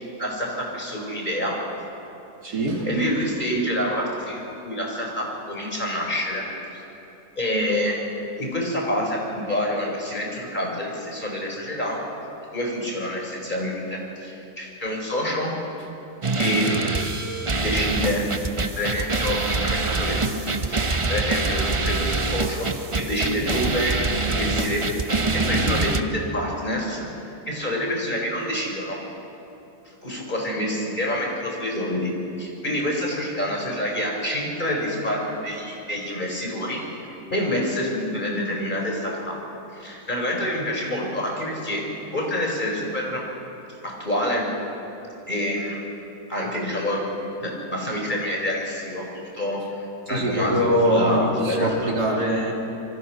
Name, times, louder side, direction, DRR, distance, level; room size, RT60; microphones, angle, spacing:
voice 1, 0.2-1.5 2.5-2.6 2.8-6.4 6.7-6.8 7.4-7.9 8.4-12.0 12.5-15.5 16.3-17.1 17.6-18.3 18.8-20.8 21.1-23.9 24.2-27.1 27.5-29.0 30.0-32.1 32.4-36.8 37.3-39.3 39.7-41.8 42.1-43.2 43.8-44.4 45.3-45.8 46.3-47.0 47.4-49.6 50.1-51.9, left 1 dB, 30° left, -1 dB, 4.8 m, -27 dB
voice 2, 2.4-2.9 23.2-23.6 50.1-52.5, equal, 80° right, -1 dB, 3.6 m, -23 dB
sound 1, 16.2-26.0, right 3 dB, 25° right, 0.7 m, -25 dB
26.5 x 24.0 x 5.9 m, 2.9 s
omnidirectional pair, 1.7 m